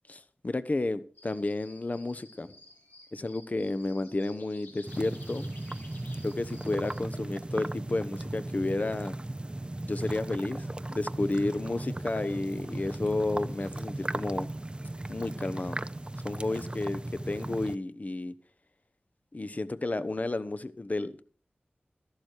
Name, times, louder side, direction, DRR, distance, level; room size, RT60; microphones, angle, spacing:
voice 1, 0.1-2.5 3.1-5.5 6.2-9.1 9.8-10.7 10.9-14.5 15.1-15.8 16.2-17.0 17.3-18.3 19.3-21.2, left 2 dB, 45° left, 0.9 m, -31 dB
sound 1, 1.2-7.0, left 2 dB, 90° left, 5.6 m, -54 dB
sound 2, 4.9-17.8, right 1 dB, 25° right, 0.6 m, -37 dB
13.5 x 11.5 x 4.6 m
wide cardioid pair, 55°, 4 cm